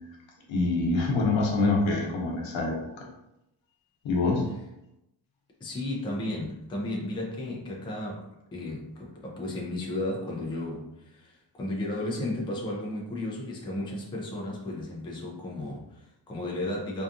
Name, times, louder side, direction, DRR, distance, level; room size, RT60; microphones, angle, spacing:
voice 1, 0.5-3.1 4.0-4.5, left 3 dB, 85° left, 0 dB, 0.8 m, -25 dB
voice 2, 5.6-17.0, left 1 dB, 10° left, -3 dB, 0.3 m, -34 dB
2.7 x 2.3 x 2.5 m, 0.87 s
wide cardioid pair, 165°, 44 cm